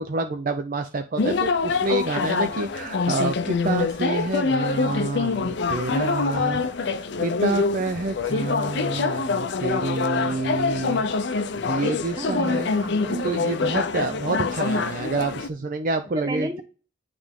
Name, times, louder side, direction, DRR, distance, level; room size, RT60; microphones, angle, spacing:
voice 1, 0.0-6.6 7.0-11.0 11.6-12.6 13.2-16.5, right 3 dB, 45° right, 0.5 m, -28 dB
sound 1, 1.2-15.5, left 4 dB, 60° left, 0.5 m, -25 dB
voice 2, 12.2-13.4 14.2-14.4 16.1-16.6, right 2 dB, 20° right, 0.9 m, -32 dB
9.2 x 3.3 x 3.6 m
head